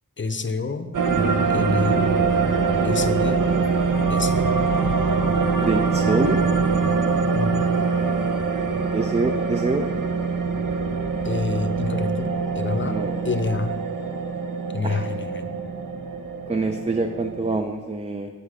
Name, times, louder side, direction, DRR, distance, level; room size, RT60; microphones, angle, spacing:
voice 1, 0.2-0.9 1.5-2.1 2.8-3.4 4.1-4.4 7.3-7.7 11.2-12.9 13.2-13.8 14.7-15.6, left 4 dB, 35° left, 8 dB, 0.7 m, -27 dB
sound 1, 0.9-17.6, right 4 dB, 65° right, 0.9 m, -23 dB
voice 2, 5.6-6.4 8.9-9.9 12.8-13.2 14.8-15.1 16.5-18.3, right 3 dB, 20° right, 6 dB, 0.4 m, -25 dB
8.3 x 8.3 x 4.9 m, 1.5 s
wide cardioid pair, 110°, 35 cm